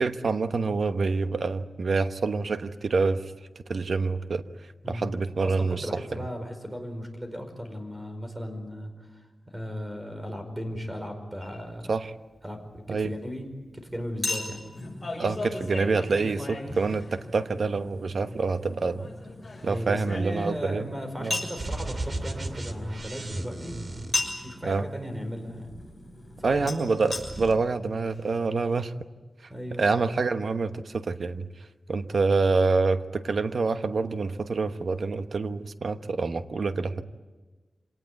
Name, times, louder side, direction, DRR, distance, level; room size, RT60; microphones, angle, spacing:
voice 1, 0.0-3.2 3.7-4.4 4.9-5.9 11.9-12.1 12.9-13.1 15.2-19.1 19.6-20.9 21.2-21.4 24.6-24.8 26.4-28.9 29.8-31.5 31.9-37.0, right 4 dB, 70° right, 9 dB, 1.1 m, -26 dB
voice 2, 5.4-9.2 9.5-11.9 12.4-14.6 16.7-16.8 19.6-23.8 24.4-25.7 26.4-27.2 29.5-29.9, equal, 15° right, 6 dB, 5.0 m, -36 dB
Chink clink, 11.4-11.6 14.2-17.4 19.0-20.7 21.3-21.6 24.1-24.5 26.7-26.8 27.1-27.2 27.9-28.0 28.2-28.3, left 3 dB, 30° left, 6.5 m, -33 dB
sound 1, 14.7-27.5, left 1 dB, 10° left, 4.9 m, -47 dB
sound 2, 21.6-24.9 25.6-26.7 26.9-27.5, right 2 dB, 45° right, 2.4 m, -36 dB
26.0 x 18.5 x 9.5 m, 1.3 s
wide cardioid pair, 90°, 0 cm